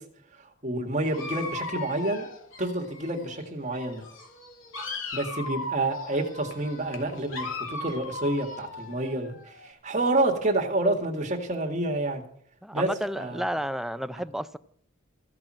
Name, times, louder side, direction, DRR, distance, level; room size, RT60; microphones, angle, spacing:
voice 1, 0.6-2.3 2.6-4.0 5.1-12.2 12.7-12.9 13.2-13.4, right 2 dB, 35° right, 2.0 m, -28 dB
Dog, 1.0-3.4 3.7-9.7, left 3 dB, 75° left, 2.6 m, -38 dB
voice 2, 12.6-14.6, equal, ahead, 0.4 m, -31 dB
15.0 x 6.0 x 8.8 m
head